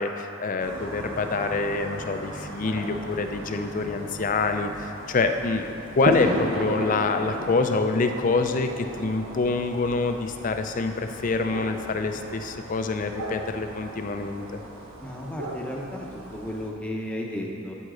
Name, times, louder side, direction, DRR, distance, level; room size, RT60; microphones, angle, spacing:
voice 1, 0.0-14.6, left 3 dB, 40° left, 7 dB, 0.4 m, -26 dB
sound 1, 0.6-16.7, right 1 dB, 80° right, 1.0 m, -36 dB
voice 2, 15.0-17.7, left 1 dB, 5° left, -2 dB, 0.8 m, -34 dB
9.4 x 8.0 x 3.8 m, 2.7 s
head